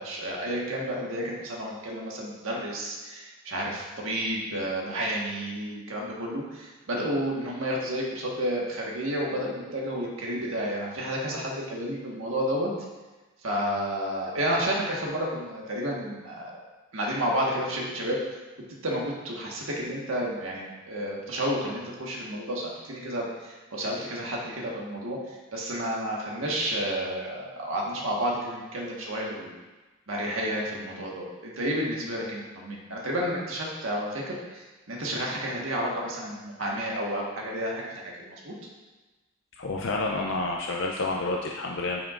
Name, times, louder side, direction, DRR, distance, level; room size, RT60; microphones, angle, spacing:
voice 1, 0.0-12.7 13.4-16.6 16.9-18.2 18.8-29.5 30.1-38.5, equal, 75° right, -3 dB, 1.5 m, -31 dB
voice 2, 39.6-42.0, left 2 dB, 60° left, 0 dB, 0.5 m, -29 dB
9.6 x 5.8 x 2.5 m, 1.2 s
head